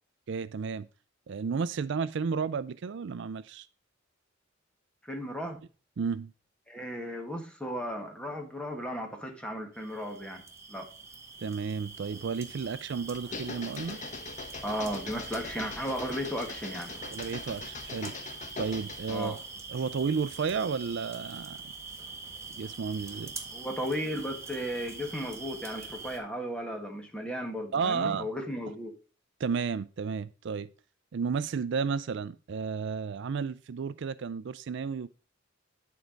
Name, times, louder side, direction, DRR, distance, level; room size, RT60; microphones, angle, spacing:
voice 1, 0.3-0.9 1.3-3.7 6.0-6.3 11.4-14.0 17.0-18.1 18.6-19.4 19.7-21.6 22.6-23.3 27.7-28.3 29.4-30.7 31.1-35.1, right 5 dB, 65° right, 0.4 m, -32 dB
voice 2, 5.0-5.6 6.7-10.4 10.7-10.9 14.6-16.9 19.1-19.4 23.5-28.9, equal, 5° left, 1.6 m, -35 dB
sound 1, 9.7-26.2, right 4 dB, 15° right, 1.6 m, -44 dB
sound 2, 13.1-19.3, left 4 dB, 40° left, 0.9 m, -42 dB
10.5 x 4.6 x 5.1 m
head